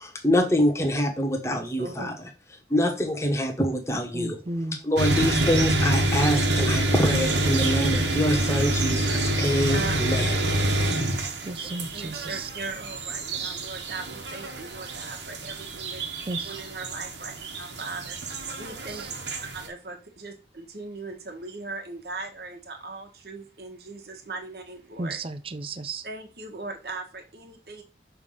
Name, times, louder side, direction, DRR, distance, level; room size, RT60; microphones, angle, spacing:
voice 1, 0.0-2.3 2.7-4.4 4.8-10.5, equal, 15° left, 2 dB, 1.2 m, -25 dB
voice 2, 1.5-2.1 9.7-10.7 11.9-16.0 16.5-17.3 17.6-19.1 19.5-25.2 26.0-27.8, right 3 dB, 60° right, 3 dB, 1.3 m, -39 dB
voice 3, 4.1-4.8 11.4-12.5 16.3-16.6 18.9-19.1 25.0-26.1, right 2 dB, 30° right, 11 dB, 0.5 m, -34 dB
sound 1, 5.0-19.7, right 1 dB, 85° right, 1.3 m, -27 dB
6.2 x 3.5 x 5.4 m, 0.33 s
head